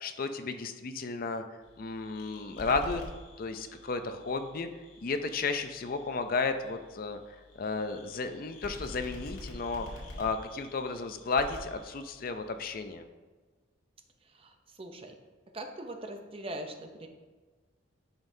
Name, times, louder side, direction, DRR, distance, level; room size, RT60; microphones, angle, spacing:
voice 1, 0.0-1.4 1.8-3.0 3.4-4.7 5.0-7.2 7.5-13.0, left 4 dB, 45° left, 8 dB, 0.5 m, -33 dB
sound 1, 1.6-12.9, left 1 dB, 75° left, 2.2 m, -48 dB
voice 2, 14.2-15.2 15.5-17.1, right 1 dB, 30° right, 5 dB, 0.6 m, -42 dB
10.5 x 5.5 x 2.7 m, 1.4 s
head